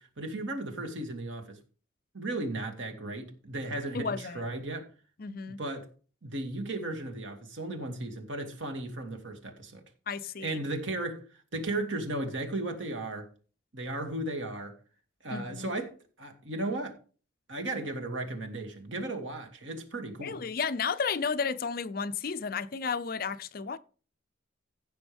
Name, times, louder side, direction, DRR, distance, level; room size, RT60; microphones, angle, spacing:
voice 1, 0.0-1.6 2.1-4.9 5.5-5.9 6.2-9.8 10.4-11.2 11.5-13.3 13.7-14.7 15.2-16.9 17.5-20.4, right 2 dB, 75° right, 2.4 m, -35 dB
voice 2, 3.9-4.4 5.2-5.6 10.1-10.6 15.3-15.7 20.2-23.8, left 5 dB, 50° left, 0.5 m, -33 dB
16.0 x 6.1 x 3.5 m
head